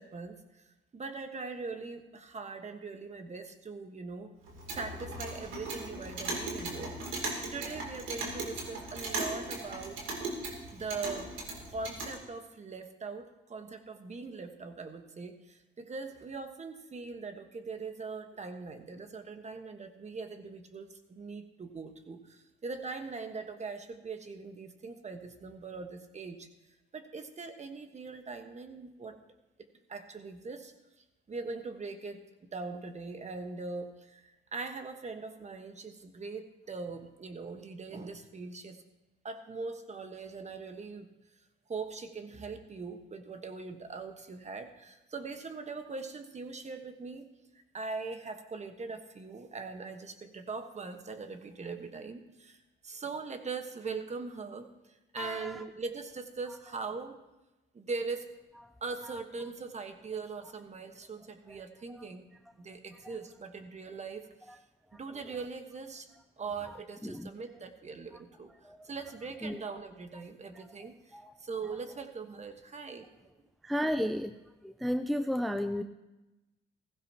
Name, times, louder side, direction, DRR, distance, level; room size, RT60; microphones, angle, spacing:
voice 1, 0.0-4.3 4.7-7.0 7.5-10.0 10.4-11.3 11.7-26.5 26.9-29.1 29.9-30.7 31.3-38.8 39.2-41.1 41.7-47.3 47.7-57.2 57.7-58.3 58.8-64.6 64.9-66.1 66.4-73.0, right 4 dB, 35° right, 7 dB, 1.3 m, -41 dB
Clock, 4.4-12.2, right 2 dB, 80° right, 3.0 m, -38 dB
voice 2, 55.2-55.6 67.0-67.3 68.6-68.9 69.4-69.6 71.1-71.3 73.6-74.3 74.6-75.8, equal, ahead, 8 dB, 0.5 m, -33 dB
16.0 x 15.0 x 2.9 m, 1.0 s
cardioid pair, 90°, 20 cm